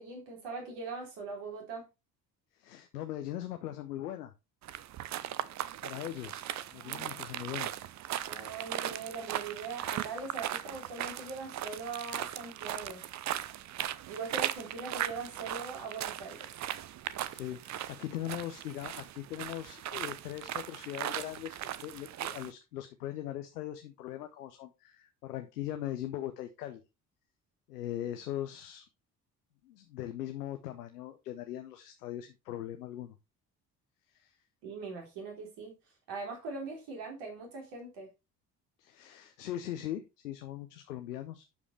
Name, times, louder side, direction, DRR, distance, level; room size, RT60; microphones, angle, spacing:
voice 1, 0.0-1.8 6.8-7.0 8.2-13.0 14.1-16.5 34.6-35.7 36.1-38.1, right 4 dB, 60° right, 3.8 m, -41 dB
voice 2, 2.6-4.3 5.8-6.4 6.7-7.7 17.3-26.8 27.7-28.9 29.6-33.2 34.1-34.3 38.8-41.4, left 12 dB, 75° left, 0.9 m, -40 dB
sound 1, 4.6-22.5, right 12 dB, 35° right, 0.6 m, -38 dB
11.5 x 5.2 x 3.3 m
figure-of-eight pair, 50°, 48 cm